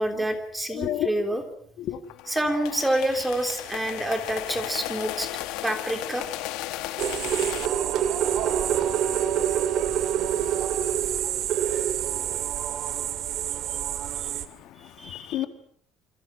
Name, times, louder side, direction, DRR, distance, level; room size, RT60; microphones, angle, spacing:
voice 1, 0.0-1.4 2.3-5.3 5.6-6.3 14.8-15.4, right 1 dB, 5° right, 3.3 m, -28 dB
voice 2, 0.7-1.4 1.8-2.0 14.4-15.5, left 12 dB, 55° left, 1.9 m, -32 dB
sound 1, 2.1-7.6, left 16 dB, 75° left, 1.5 m, -34 dB
sound 2, 7.0-14.5, right 10 dB, 50° right, 2.3 m, -26 dB
28.0 x 27.0 x 6.2 m
cardioid pair, 170°, 0 cm